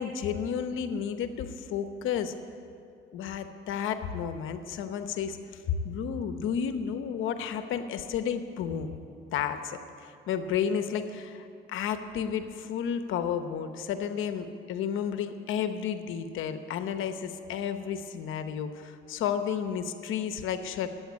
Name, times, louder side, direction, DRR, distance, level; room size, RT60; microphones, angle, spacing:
voice 1, 0.0-2.3 3.1-9.0 9.3-20.9, left 8 dB, 85° left, 9 dB, 0.9 m, -32 dB
14.5 x 8.9 x 9.7 m, 2.5 s
cardioid pair, 90°, 20 cm